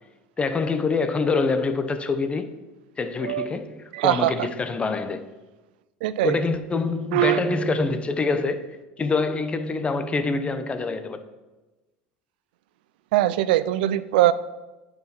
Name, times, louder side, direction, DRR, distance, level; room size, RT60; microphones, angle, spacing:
voice 1, 0.4-2.5 3.0-5.2 6.2-8.6 9.0-11.2, left 4 dB, 20° left, 0.9 m, -25 dB
voice 2, 3.9-4.5 6.0-6.4 7.1-7.4 13.1-14.3, right 14 dB, 80° right, 0.4 m, -21 dB
9.3 x 4.9 x 6.0 m
hypercardioid pair, 95°, 5 cm